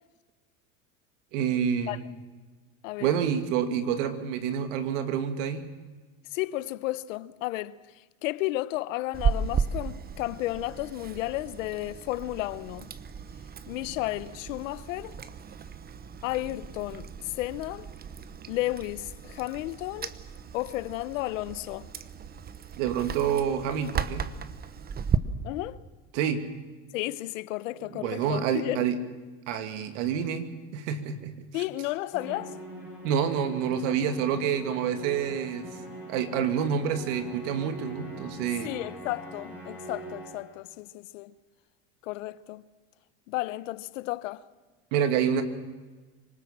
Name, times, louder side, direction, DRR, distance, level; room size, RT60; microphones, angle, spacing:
voice 1, 1.3-2.0 3.0-5.7 22.8-24.3 26.1-26.5 27.9-29.0 29.5-31.6 33.0-35.7 36.1-38.7 44.9-45.4, right 8 dB, 75° right, 2.6 m, -28 dB
voice 2, 6.3-7.7 8.2-12.9 13.7-15.2 16.2-17.1 17.4-17.9 18.5-20.1 20.5-21.9 25.4-25.8 26.9-28.9 31.5-32.6 38.6-41.3 42.0-42.6 43.3-44.4, left 17 dB, 85° left, 1.0 m, -33 dB
Chewing mastication, 9.1-25.2, right 6 dB, 25° right, 1.0 m, -35 dB
Musical instrument, 32.1-40.6, right 1 dB, 5° right, 6.0 m, -42 dB
25.5 x 19.0 x 7.4 m
supercardioid pair, 125°, 37 cm